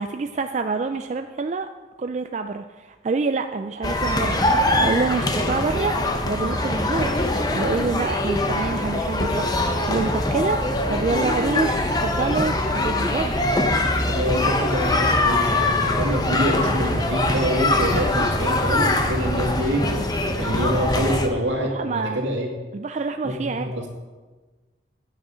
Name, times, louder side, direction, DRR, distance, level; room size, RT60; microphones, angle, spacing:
voice 1, 0.0-1.7 2.0-6.0 6.2-13.3 21.7-22.2 22.7-23.7, right 4 dB, 35° right, 7 dB, 0.3 m, -27 dB
sound 1, 3.8-21.3, left 1 dB, 20° left, 0.7 m, -22 dB
voice 2, 13.9-20.0 20.4-22.5 23.2-23.8, equal, 75° right, -1 dB, 2.2 m, -26 dB
10.0 x 8.1 x 5.0 m, 1.3 s
head